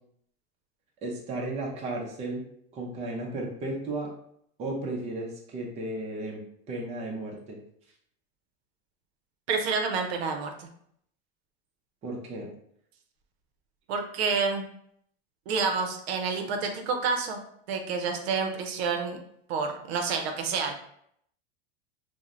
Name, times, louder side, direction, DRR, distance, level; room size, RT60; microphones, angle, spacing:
voice 1, 1.0-2.4 2.7-4.1 4.6-7.6 12.0-12.5, right 2 dB, 20° right, -1 dB, 0.5 m, -34 dB
voice 2, 9.5-10.7 13.9-14.7 15.5-17.4 17.7-19.2 19.5-20.7, right 5 dB, 85° right, 4 dB, 0.6 m, -28 dB
3.0 x 2.1 x 2.4 m, 0.69 s
supercardioid pair, 145°, 31 cm